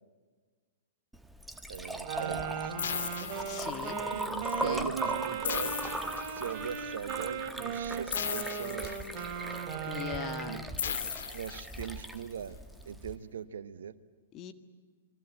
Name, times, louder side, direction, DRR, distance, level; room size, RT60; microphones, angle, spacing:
Liquid, 1.1-13.2, right 1 dB, 5° right, 1.3 m, -40 dB
voice 1, 1.7-2.7 4.1-5.8 6.2-9.0 10.5-12.6 12.8-14.0, right 8 dB, 65° right, 14 dB, 1.2 m, -40 dB
Wind instrument woodwind instrument, 2.0-10.7, right 7 dB, 35° right, 3.0 m, -37 dB
sound 1, 2.8-4.1 5.4-6.8 8.1-9.5 10.8-12.1, left 8 dB, 65° left, 2.9 m, -37 dB
voice 2, 3.3-4.0 4.6-4.9 9.9-10.7 14.3-14.5, left 10 dB, 30° left, 9 dB, 1.7 m, -40 dB
28.5 x 21.5 x 8.5 m, 1.4 s
figure-of-eight pair, 110°, 0 cm